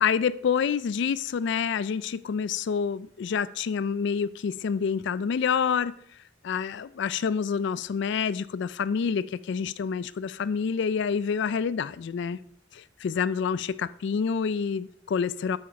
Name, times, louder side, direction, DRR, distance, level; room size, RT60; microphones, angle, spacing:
voice 1, 0.0-5.9 6.4-12.4 12.7-15.6, left 6 dB, 60° left, 0.3 m, -27 dB
8.9 x 8.5 x 5.2 m
head